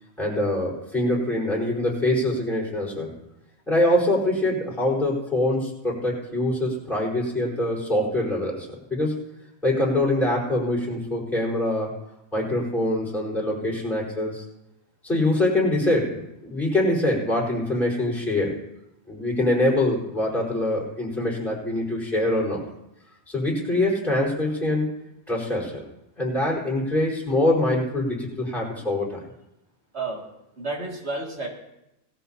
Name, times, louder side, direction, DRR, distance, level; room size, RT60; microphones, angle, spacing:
voice 1, 0.2-3.1 3.7-9.1 9.6-11.9 12.3-14.4 15.0-18.5 19.1-22.6 23.3-24.9 25.3-25.8 26.2-29.2, left 1 dB, ahead, -6 dB, 4.5 m, -24 dB
voice 2, 30.6-31.5, right 3 dB, 90° right, -1 dB, 2.8 m, -30 dB
18.5 x 13.5 x 2.9 m, 0.87 s
omnidirectional pair, 1.1 m